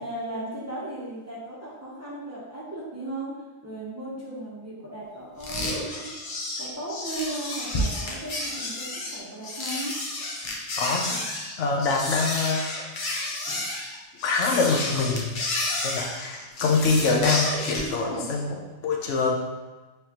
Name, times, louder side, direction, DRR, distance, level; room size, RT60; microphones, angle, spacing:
voice 1, 0.0-3.3 3.6-6.1 6.6-9.9 13.5-13.6 17.7-18.3, right 2 dB, 15° right, -8 dB, 0.9 m, -36 dB
sound 1, 5.4-17.9, left 2 dB, 50° left, 0.8 m, -31 dB
voice 2, 10.8-11.2 11.6-12.7 14.2-19.3, left 4 dB, 90° left, 1 dB, 1.0 m, -25 dB
4.8 x 3.2 x 2.9 m, 1.2 s
omnidirectional pair, 1.2 m